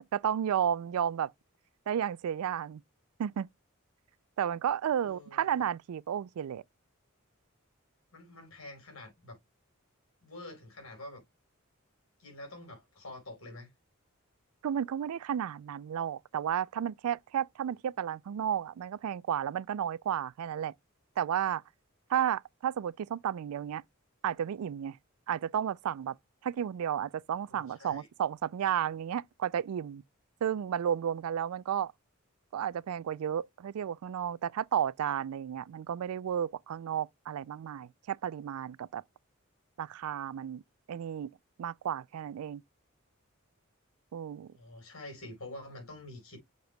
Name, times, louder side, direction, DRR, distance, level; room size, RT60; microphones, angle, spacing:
voice 1, 0.1-1.3 1.9-2.8 3.2-3.5 4.4-6.6 14.6-20.7 21.2-21.6 22.1-23.8 24.2-25.0 25.3-26.2 26.4-30.0 30.4-31.9 32.5-39.0 39.8-40.6 40.9-41.3 41.6-42.6 44.1-44.5, right 9 dB, 90° right, 0.3 m, -32 dB
voice 2, 5.0-5.6 8.1-9.4 10.2-11.2 12.2-13.7 27.5-28.1 44.5-46.4, left 1 dB, 75° left, 4.8 m, -47 dB
7.7 x 6.6 x 2.2 m
head